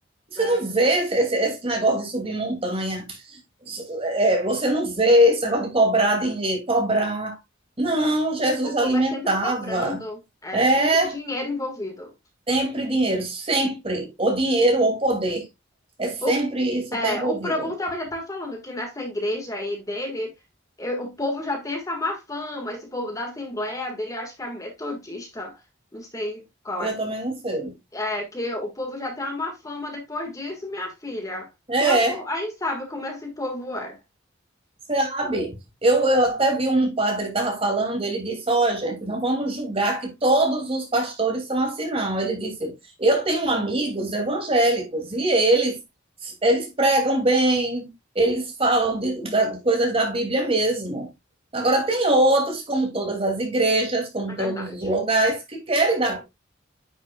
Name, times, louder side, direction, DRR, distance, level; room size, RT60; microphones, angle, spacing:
voice 1, 0.3-3.4 3.7-7.4 7.8-10.0 10.5-11.1 12.5-15.5 16.0-17.6 26.8-27.7 31.7-32.2 34.9-35.6 35.8-42.7 43.0-45.8 46.2-47.9 48.1-51.1 51.5-56.2, right 1 dB, 30° right, 2.5 m, -22 dB
voice 2, 8.6-12.1 16.2-16.4 16.9-20.3 20.8-25.6 25.9-26.9 27.9-31.5 31.8-34.0 54.4-54.6, left 1 dB, 15° left, 1.7 m, -31 dB
9.7 x 6.6 x 2.3 m
head